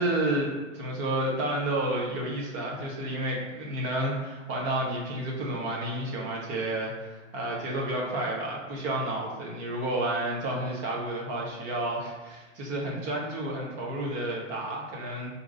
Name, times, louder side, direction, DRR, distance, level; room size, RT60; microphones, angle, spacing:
voice 1, 0.0-15.3, right 1 dB, 20° right, -2 dB, 0.7 m, -31 dB
4.4 x 2.6 x 3.8 m, 1.2 s
hypercardioid pair, 145°, 40 cm